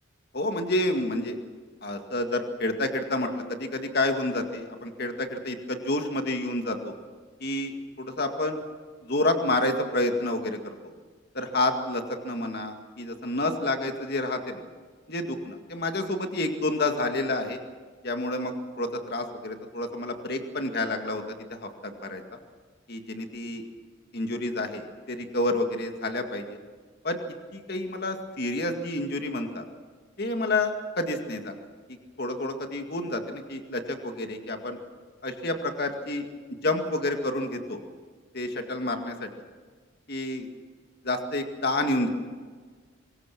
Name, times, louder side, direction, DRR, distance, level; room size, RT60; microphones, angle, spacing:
voice 1, 0.3-1.4 1.8-6.9 7.4-7.7 8.0-8.6 9.0-10.7 11.3-14.6 15.1-17.6 18.0-22.2 22.9-23.6 24.1-26.6 27.0-27.2 27.5-29.7 30.2-31.6 32.2-34.8 35.2-36.3 36.6-37.8 38.3-39.3 40.1-40.5 41.0-42.1, left 2 dB, 50° left, 5 dB, 2.1 m, -29 dB
25.0 x 21.5 x 6.1 m, 1.5 s
head